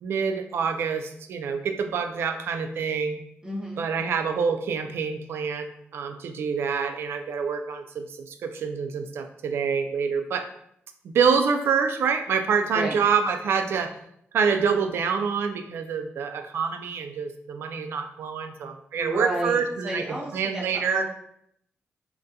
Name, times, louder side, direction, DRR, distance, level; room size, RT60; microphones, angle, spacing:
voice 1, 0.0-3.2 3.8-10.5 11.1-13.9 14.3-21.0, right 6 dB, 70° right, 7 dB, 0.3 m, -26 dB
voice 2, 3.4-3.9 12.6-12.9 18.9-21.0, right 1 dB, 15° right, -4 dB, 0.6 m, -32 dB
3.6 x 2.2 x 2.7 m, 0.73 s
wide cardioid pair, 175°, 4 cm